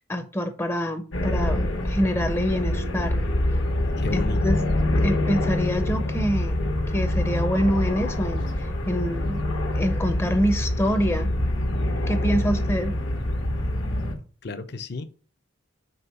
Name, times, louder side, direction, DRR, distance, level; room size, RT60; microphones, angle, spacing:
voice 1, 0.0-3.2 4.1-4.6 5.0-9.4 9.7-11.3 12.1-12.9, equal, 10° left, 0.5 m, -26 dB
sound 1, 1.1-14.2, left 1 dB, 75° left, 1.2 m, -25 dB
voice 2, 4.0-4.6 14.4-15.0, left 3 dB, 55° left, 0.6 m, -32 dB
5.4 x 3.3 x 5.6 m
head